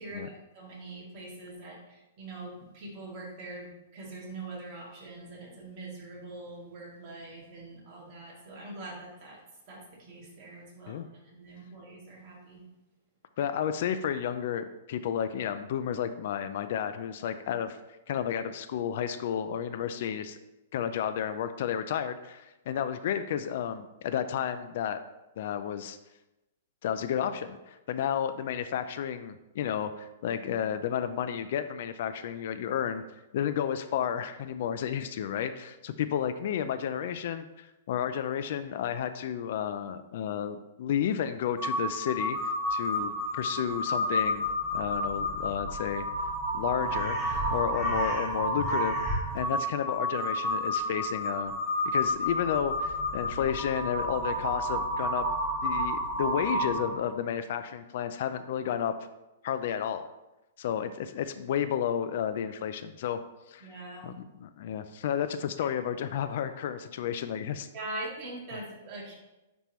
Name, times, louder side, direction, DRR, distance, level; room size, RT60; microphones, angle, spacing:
voice 1, 0.0-9.4 9.7-12.6 63.6-64.1 67.7-69.1, right 2 dB, 35° right, -5 dB, 2.2 m, -43 dB
voice 2, 13.4-17.8 18.1-20.4 20.7-25.0 25.4-26.0 26.8-33.0 33.3-42.4 42.7-44.5 44.7-46.1 46.5-49.0 49.3-51.6 51.9-55.3 55.6-58.9 59.4-60.1 60.6-63.2 63.5-63.7 64.0-67.7, left 9 dB, 55° left, 11 dB, 0.4 m, -32 dB
Crow, 41.6-57.1, equal, 15° right, 1.4 m, -30 dB
9.9 x 3.6 x 3.1 m, 0.99 s
hypercardioid pair, 160°, 0 cm